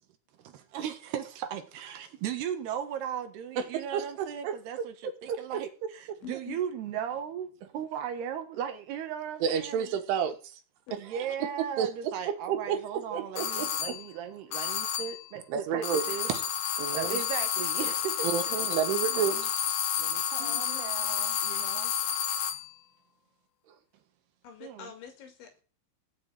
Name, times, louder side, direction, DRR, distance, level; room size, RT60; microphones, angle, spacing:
voice 1, 0.4-7.5 7.7-10.0 11.0-16.3 16.9-18.5 19.2-19.5 20.0-21.9 24.6-24.9, right 9 dB, 65° right, 3.1 m, -37 dB
voice 2, 3.6-4.0 4.4-5.6 9.4-10.6 10.9-14.0 15.5-16.0 16.3-16.5 16.8-17.2 18.2-19.4, right 8 dB, 85° right, 4.1 m, -31 dB
voice 3, 6.2-6.6 10.9-11.0 16.1-16.2 20.4-20.8 24.4-25.6, left 7 dB, 75° left, 4.9 m, -45 dB
sound 1, 13.4-14.1 14.5-15.3 15.8-22.7, left 8 dB, 60° left, 2.8 m, -30 dB
16.5 x 5.6 x 9.0 m
omnidirectional pair, 5.4 m